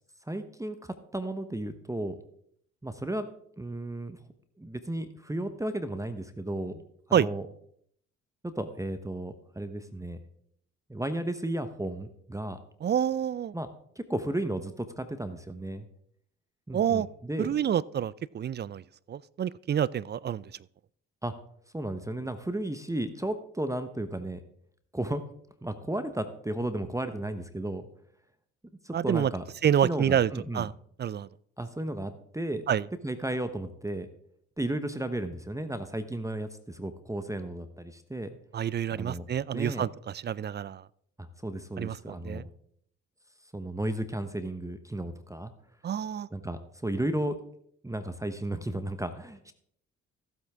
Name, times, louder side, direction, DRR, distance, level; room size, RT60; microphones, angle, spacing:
voice 1, 0.3-2.2 2.8-3.3 3.6-4.2 4.6-6.8 7.1-7.5 8.4-10.2 10.9-12.6 13.5-13.7 14.0-15.9 16.7-17.5 21.2-21.3 21.7-24.4 24.9-25.2 25.6-27.9 28.8-29.4 29.8-30.7 31.6-32.6 33.0-34.1 34.6-38.3 38.9-39.3 39.5-39.9 41.2-42.4 43.5-45.5 46.3-47.4 47.8-49.5, right 1 dB, 10° right, 10 dB, 1.0 m, -34 dB
voice 2, 12.8-13.5 16.7-17.1 17.4-18.8 19.1-20.4 28.9-29.3 29.6-30.7 31.0-31.3 32.7-32.8 38.5-39.9 40.2-40.8 41.8-42.4 45.8-46.3, right 9 dB, 30° right, 22 dB, 0.4 m, -28 dB
15.0 x 8.0 x 3.6 m, 0.67 s
hypercardioid pair, 50°, 33 cm